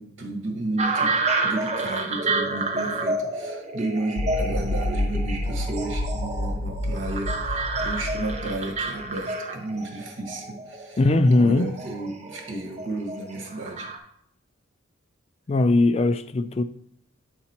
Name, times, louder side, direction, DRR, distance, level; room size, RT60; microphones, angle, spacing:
voice 1, 0.0-11.0 11.4-13.9, right 2 dB, 70° right, 1.5 m, -33 dB
sound 1, 0.8-14.0, right 3 dB, 35° right, 0.8 m, -29 dB
sound 2, 4.2-9.0, left 1 dB, 85° left, 0.5 m, -29 dB
voice 2, 11.0-11.7 15.5-16.6, left 2 dB, 30° left, 0.3 m, -19 dB
8.7 x 4.0 x 4.4 m
head